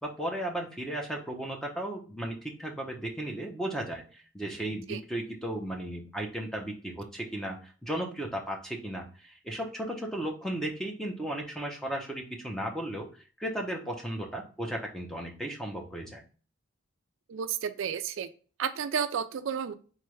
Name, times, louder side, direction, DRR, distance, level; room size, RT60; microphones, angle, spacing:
voice 1, 0.0-13.1 13.4-16.2, right 1 dB, ahead, 0 dB, 0.7 m, -35 dB
voice 2, 17.3-18.3 18.6-19.7, right 7 dB, 70° right, 10 dB, 0.4 m, -31 dB
3.8 x 3.3 x 3.1 m, 0.39 s
head